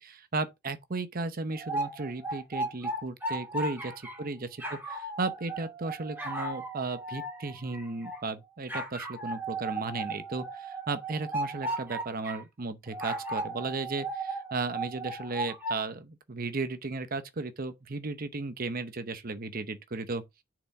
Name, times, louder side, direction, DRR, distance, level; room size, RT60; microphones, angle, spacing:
voice 1, 0.0-3.9 4.2-20.2, right 3 dB, 45° right, 0.8 m, -35 dB
sound 1, 1.5-4.2 4.6-8.2 8.7-12.4 12.9-15.8, right 2 dB, 10° right, 2.9 m, -36 dB
6.8 x 5.0 x 3.6 m
head